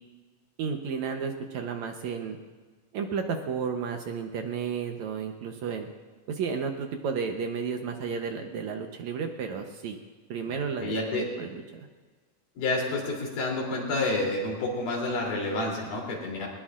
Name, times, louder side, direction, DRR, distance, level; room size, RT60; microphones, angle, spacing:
voice 1, 0.6-2.4 2.9-5.9 6.3-10.0 10.3-11.9, right 6 dB, 70° right, 4 dB, 1.9 m, -32 dB
voice 2, 10.8-11.3 12.6-16.5, left 2 dB, 85° left, -2 dB, 5.0 m, -29 dB
20.5 x 20.5 x 2.5 m, 1.4 s
omnidirectional pair, 3.9 m